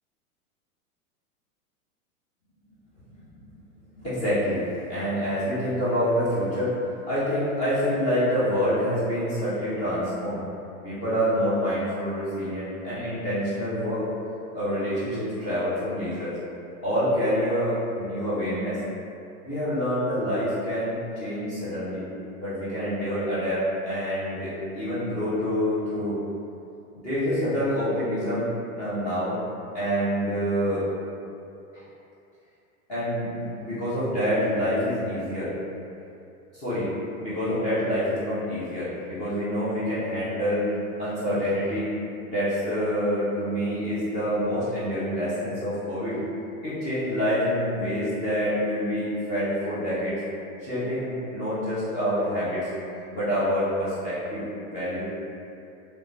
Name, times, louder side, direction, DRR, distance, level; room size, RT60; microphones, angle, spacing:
voice 1, 4.0-4.6 4.9-6.8 7.1-10.4 10.8-14.1 14.5-16.3 16.8-18.8 19.4-22.0 22.4-26.2 27.0-28.5 28.7-29.4 29.7-30.8 31.7-31.8 32.9-35.5 36.5-36.9 37.2-40.7 41.0-41.9 42.2-46.2 46.6-50.2 50.6-52.7 53.1-55.0, equal, 20° left, -12 dB, 0.4 m, -27 dB
2.9 x 2.1 x 2.6 m, 2.7 s
hypercardioid pair, 115°, 44 cm